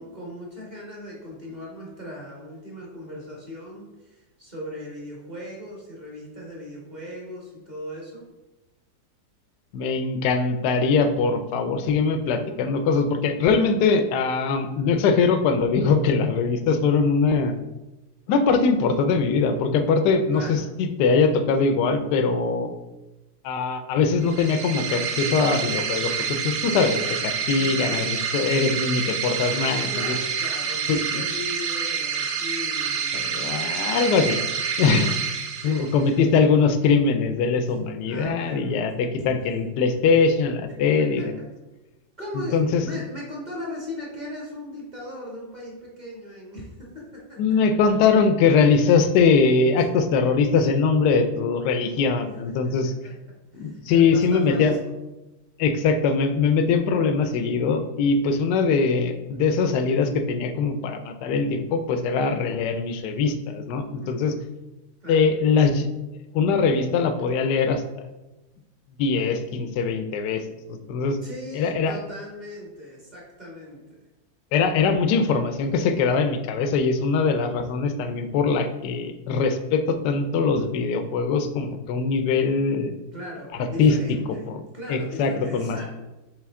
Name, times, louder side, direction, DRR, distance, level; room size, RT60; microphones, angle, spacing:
voice 1, 0.0-8.2 20.3-20.7 27.6-28.2 29.9-33.3 34.9-35.0 35.6-36.2 38.1-38.8 39.2-39.6 41.0-41.5 42.2-47.4 52.2-53.1 53.5-54.9 64.0-64.4 65.0-65.2 71.2-73.8 83.1-84.5 84.7-85.8, left 1 dB, 25° right, -3 dB, 1.6 m, -38 dB
voice 2, 9.7-17.5 18.3-22.7 23.4-30.2 30.9-31.2 33.1-34.4 34.8-35.1 35.6-41.3 42.3-42.8 47.4-52.9 53.5-54.8 55.6-64.3 65.1-65.9 66.3-67.8 69.0-70.4 70.7-71.2 71.5-72.0 74.5-82.9 83.8-84.0 84.5-84.6 84.9-85.8, left 5 dB, 70° left, 8 dB, 1.1 m, -22 dB
sound 1, 24.2-36.1, right 7 dB, 65° right, 1.3 m, -28 dB
7.6 x 3.5 x 3.6 m, 1.0 s
omnidirectional pair, 2.0 m